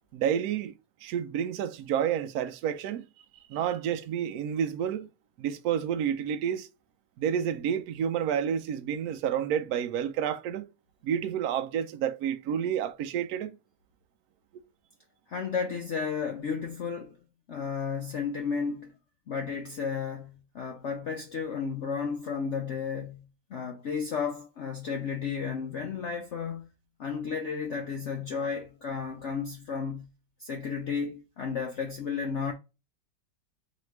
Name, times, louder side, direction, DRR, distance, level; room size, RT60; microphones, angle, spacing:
voice 1, 0.1-0.7 1.0-3.1 3.5-5.1 5.4-6.7 7.2-10.7 11.0-13.6, right 9 dB, 70° right, 0.9 m, -29 dB
voice 2, 15.3-17.2 17.5-18.9 19.3-23.2 23.5-26.7 27.0-30.1 30.4-32.5, left 6 dB, 85° left, 0.6 m, -33 dB
4.2 x 2.9 x 3.1 m
omnidirectional pair, 2.0 m